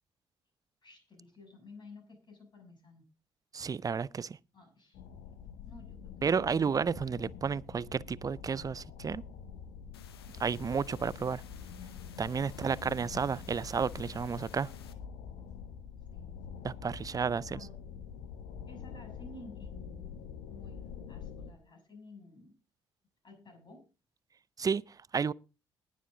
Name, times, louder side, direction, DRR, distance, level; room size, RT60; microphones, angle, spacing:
voice 1, 0.8-3.0 4.5-5.0 5.6-6.7 12.4-12.8 16.1-16.4 17.1-17.8 18.6-22.5 23.2-23.9, left 2 dB, 35° left, 6.4 m, -54 dB
voice 2, 3.5-4.4 6.2-9.2 10.4-11.4 12.2-14.7 16.6-17.6 24.6-25.3, right 6 dB, 30° right, 0.5 m, -32 dB
sound 1, 4.9-21.5, left 7 dB, 65° left, 1.3 m, -46 dB
sound 2, 9.9-14.9, left 8 dB, 85° left, 0.8 m, -55 dB
19.5 x 7.3 x 3.8 m
figure-of-eight pair, 45°, 13 cm